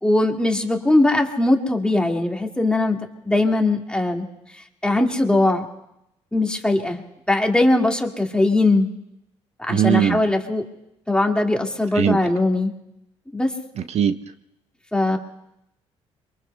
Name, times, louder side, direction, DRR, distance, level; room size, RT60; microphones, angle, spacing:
voice 1, 0.0-3.0 3.2-4.2 4.8-5.7 6.3-7.0 7.3-8.9 9.6-10.6 11.1-12.7 13.3-13.5 14.9-15.2, left 2 dB, 5° left, 2 dB, 1.9 m, -20 dB
voice 2, 9.7-10.2 11.9-12.2 13.8-14.2, right 9 dB, 55° right, 10 dB, 0.6 m, -20 dB
27.5 x 23.0 x 2.2 m, 0.85 s
supercardioid pair, 65°, 13 cm